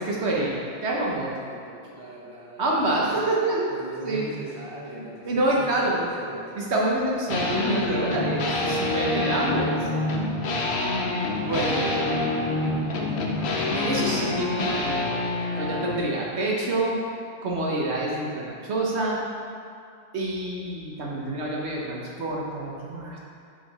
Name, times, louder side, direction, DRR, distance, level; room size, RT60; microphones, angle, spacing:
voice 1, 0.0-1.3 2.6-3.7 4.0-4.3 5.2-6.1 6.6-9.9 11.4-11.9 13.7-15.2 15.6-17.0 17.4-19.2 20.1-23.2, right 2 dB, 75° right, -3 dB, 1.3 m, -27 dB
voice 2, 1.1-3.3 3.7-6.5 11.2-12.3 12.8-14.4, right 1 dB, 30° right, -5 dB, 1.1 m, -39 dB
sound 1, 7.3-16.0, left 2 dB, 75° left, 1.1 m, -26 dB
6.2 x 5.7 x 4.1 m, 2.4 s
omnidirectional pair, 1.1 m